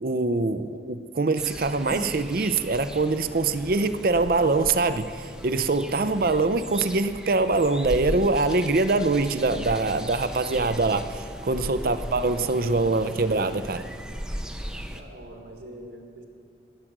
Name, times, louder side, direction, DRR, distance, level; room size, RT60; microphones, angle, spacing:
voice 1, 0.0-13.9, right 3 dB, 50° right, 11 dB, 0.5 m, -24 dB
sound 1, 1.4-15.0, equal, 5° right, 0.6 m, -37 dB
voice 2, 14.9-16.2, right 1 dB, 80° right, 1 dB, 1.9 m, -44 dB
20.0 x 7.6 x 6.0 m, 2.2 s
head